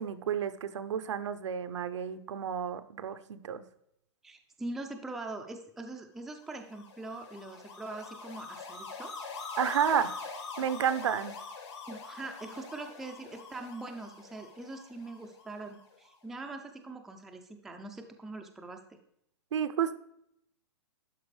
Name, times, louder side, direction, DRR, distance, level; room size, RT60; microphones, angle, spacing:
voice 1, 0.0-3.6 9.6-10.1 10.6-11.3 19.5-19.9, right 8 dB, 90° right, 11 dB, 0.7 m, -31 dB
voice 2, 4.2-9.2 11.1-11.2 11.9-18.8, right 2 dB, ahead, 4 dB, 0.3 m, -42 dB
sound 1, 6.5-15.8, left 4 dB, 80° left, 3.0 m, -44 dB
11.5 x 4.4 x 3.2 m, 0.76 s
hypercardioid pair, 165°, 15 cm